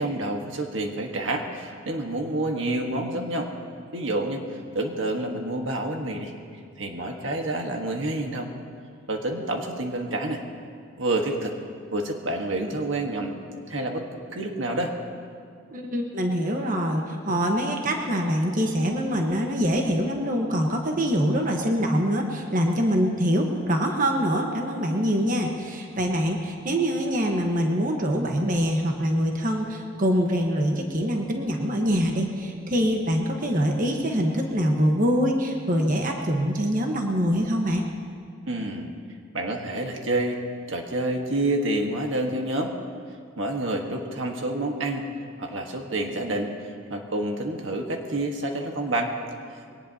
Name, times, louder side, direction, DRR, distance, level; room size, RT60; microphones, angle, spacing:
voice 1, 0.0-3.5 3.9-4.4 4.7-6.3 6.8-8.5 9.1-10.4 11.0-11.5 11.9-13.4 13.7-14.0 14.3-14.9 38.5-38.9 39.3-40.4 40.7-42.7 43.4-45.1 45.4-49.1, right 1 dB, 75° right, 2 dB, 1.5 m, -28 dB
voice 2, 15.7-37.8, equal, 40° right, 2 dB, 1.3 m, -24 dB
22.5 x 18.5 x 2.9 m, 2.2 s
head